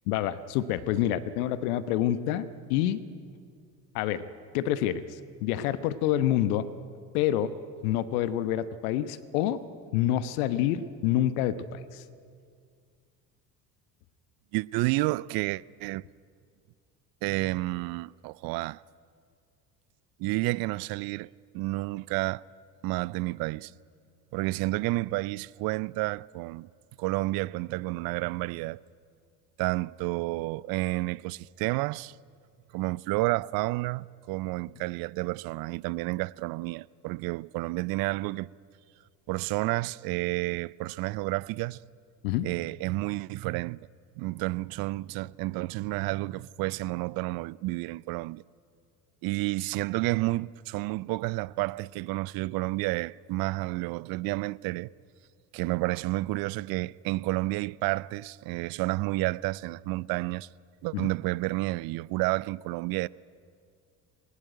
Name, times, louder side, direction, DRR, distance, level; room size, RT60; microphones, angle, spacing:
voice 1, 0.1-3.0 3.9-4.3 4.5-6.7 7.1-7.5 7.8-9.6 9.9-12.0 42.2-42.5 60.9-61.1, left 12 dB, 65° left, 1.1 m, -27 dB
voice 2, 14.5-16.0 17.2-18.8 20.2-22.4 22.8-23.7 24.3-26.7 27.0-28.8 29.6-32.1 32.7-38.5 39.3-41.8 42.4-43.8 44.2-48.4 49.2-54.9 55.5-60.5 60.8-63.1, right 21 dB, 50° right, 0.6 m, -30 dB
20.5 x 19.0 x 9.1 m
figure-of-eight pair, 60°, 48 cm